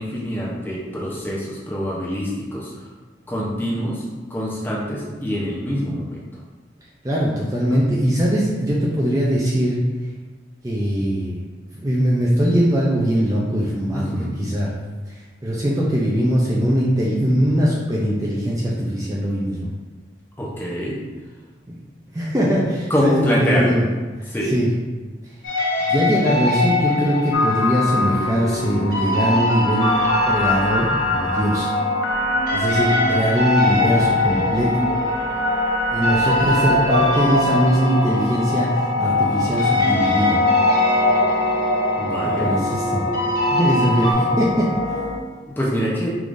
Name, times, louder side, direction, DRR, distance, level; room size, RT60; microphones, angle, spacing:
voice 1, 0.0-2.9 3.3-6.3 7.7-7.8 13.9-14.5 20.4-21.0 22.9-23.8 24.3-24.5 42.0-42.5 45.6-46.2, equal, 10° left, -5 dB, 0.7 m, -25 dB
voice 2, 7.0-9.8 10.6-11.4 11.7-14.7 15.1-19.7 21.7-21.8 22.1-23.8 24.2-24.7 25.9-29.9 30.2-31.7 32.5-34.9 35.9-40.4 42.4-43.0 43.5-45.0, equal, 20° right, -5 dB, 0.5 m, -21 dB
sound 1, 25.4-32.2 32.5-39.3 39.6-44.1, left 2 dB, 50° left, 1.1 m, -24 dB
sound 2, 27.3-45.2, left 2 dB, 80° left, 0.6 m, -23 dB
4.9 x 3.6 x 2.6 m, 1.3 s
head